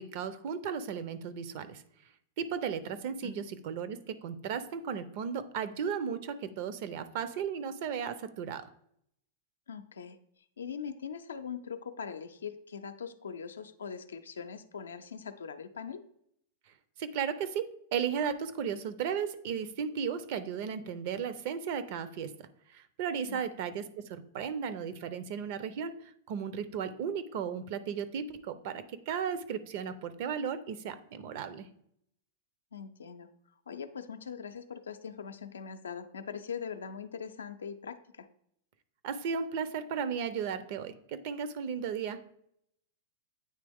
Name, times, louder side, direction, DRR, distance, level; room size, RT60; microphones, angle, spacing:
voice 1, 0.0-1.8 2.4-8.7 17.0-26.0 26.3-31.7 39.0-42.4, right 7 dB, 55° right, 13 dB, 0.5 m, -35 dB
voice 2, 9.7-10.2 10.6-16.0 23.3-23.5 32.7-33.3 33.7-38.3, left 6 dB, 90° left, 8 dB, 0.4 m, -41 dB
8.8 x 3.1 x 3.5 m, 0.71 s
hypercardioid pair, 115°, 0 cm